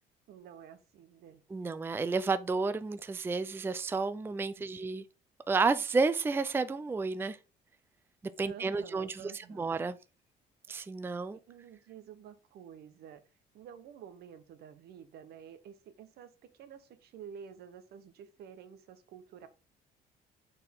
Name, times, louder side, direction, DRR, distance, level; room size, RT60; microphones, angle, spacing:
voice 1, 0.3-1.4 8.4-9.7 11.3-13.2 13.5-19.5, right 8 dB, 70° right, 1.0 m, -50 dB
voice 2, 1.5-5.0 5.5-7.4 8.4-10.0 10.7-11.4, right 4 dB, 15° right, 0.4 m, -31 dB
6.6 x 4.3 x 3.7 m
cardioid pair, 110°, 17 cm